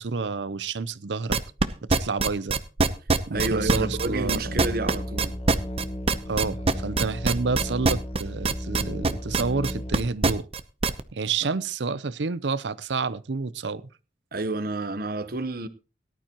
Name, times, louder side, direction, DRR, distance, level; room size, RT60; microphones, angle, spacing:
voice 1, 0.0-1.4 2.0-2.6 3.3-4.4 6.3-10.5 11.1-13.8, right 4 dB, 80° right, 0.7 m, -29 dB
sound 1, 1.3-11.0, right 3 dB, 35° right, 0.7 m, -23 dB
Musical instrument, 3.3-10.1, left 1 dB, 35° left, 1.1 m, -34 dB
voice 2, 3.3-5.4 11.4-11.5 14.3-15.7, right 2 dB, 55° right, 0.9 m, -30 dB
18.0 x 12.0 x 3.0 m
head